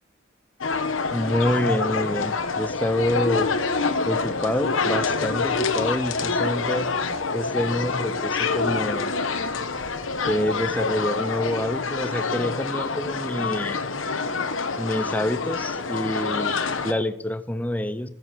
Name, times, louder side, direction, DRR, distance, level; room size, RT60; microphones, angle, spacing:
sound 1, 0.6-16.9, left 4 dB, 85° left, 1.1 m, -26 dB
voice 1, 1.1-3.5 4.1-7.0 7.3-9.1 10.2-13.8 14.8-18.1, left 1 dB, 10° left, 11 dB, 0.6 m, -27 dB
14.0 x 7.5 x 7.8 m, 0.81 s
head